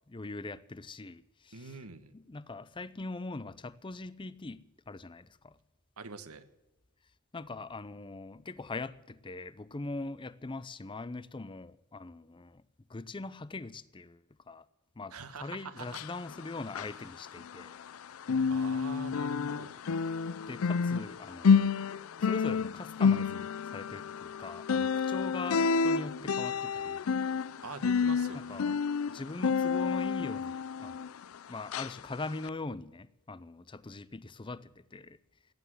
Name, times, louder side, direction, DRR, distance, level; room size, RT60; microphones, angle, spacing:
voice 1, 0.1-1.7 2.1-5.6 7.3-12.6 12.9-14.6 15.0-17.7 20.5-21.7 22.2-27.1 28.3-28.8 29.1-31.1 31.5-35.2, left 3 dB, 25° left, 0.6 m, -42 dB
voice 2, 1.5-2.1 6.0-6.4 15.1-16.0 18.5-19.8 27.6-28.6, right 4 dB, 90° right, 1.5 m, -45 dB
sound 1, 15.8-18.0 18.2-31.3 31.7-31.9 32.4-32.5, left 5 dB, 70° left, 0.5 m, -29 dB
17.5 x 10.0 x 8.1 m
head